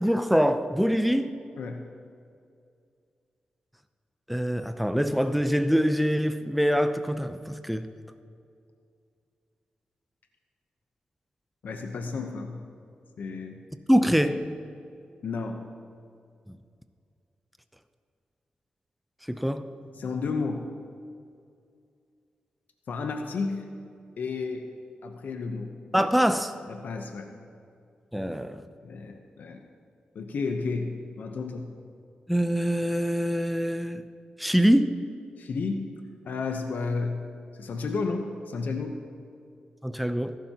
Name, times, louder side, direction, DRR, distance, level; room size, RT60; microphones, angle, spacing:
voice 1, 0.0-1.3 4.3-7.9 13.9-14.5 16.5-16.6 19.3-19.7 25.9-26.5 28.1-28.6 32.3-34.0 34.4-35.0 39.8-40.4, equal, ahead, 9 dB, 0.6 m, -24 dB
voice 2, 11.6-12.6 13.2-13.6 15.2-15.6 20.0-20.6 22.9-23.7 24.2-24.7 25.0-25.7 26.7-27.3 28.8-29.6 30.1-31.7 35.4-35.9 36.2-37.2 37.6-39.0, left 4 dB, 75° left, 5 dB, 0.9 m, -32 dB
20.0 x 11.5 x 2.9 m, 2.4 s
cardioid pair, 80°, 3 cm